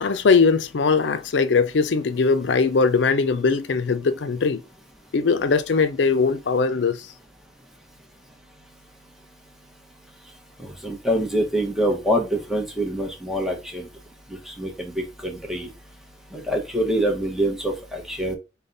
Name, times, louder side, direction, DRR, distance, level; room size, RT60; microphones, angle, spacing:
voice 1, 0.0-4.6 5.1-7.1, left 4 dB, 75° left, 0.5 m, -20 dB
voice 2, 10.8-13.8 14.5-15.7 16.3-18.4, right 1 dB, ahead, 0.9 m, -25 dB
5.3 x 2.2 x 3.9 m
head